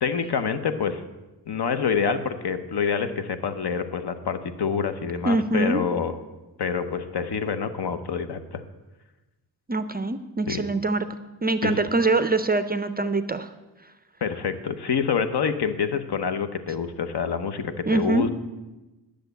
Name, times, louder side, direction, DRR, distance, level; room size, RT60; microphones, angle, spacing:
voice 1, 0.0-1.0 1.5-6.2 6.6-8.6 10.5-10.6 11.6-11.8 14.2-18.3, left 6 dB, 65° left, 10 dB, 0.9 m, -27 dB
voice 2, 5.2-5.8 9.7-11.1 11.4-13.5 17.9-18.3, right 2 dB, 25° right, 11 dB, 0.4 m, -23 dB
10.5 x 6.6 x 8.0 m, 1.1 s
wide cardioid pair, 125°, 42 cm